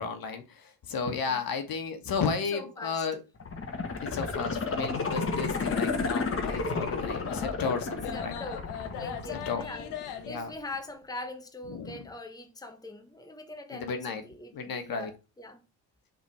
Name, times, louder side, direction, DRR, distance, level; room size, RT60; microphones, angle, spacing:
voice 1, 0.0-3.2 4.1-8.4 9.4-9.6 10.3-10.5 11.7-12.0 13.7-14.2 14.5-15.1, left 5 dB, 60° left, 1.5 m, -33 dB
voice 2, 1.1-1.4 2.5-3.0 8.1-15.6, left 2 dB, 10° left, 1.1 m, -42 dB
sound 1, 3.4-10.4 10.7-10.8, left 4 dB, 35° left, 1.4 m, -32 dB
sound 2, 4.9-10.3, left 9 dB, 90° left, 1.0 m, -40 dB
5.7 x 3.8 x 4.7 m
cardioid pair, 75°, 39 cm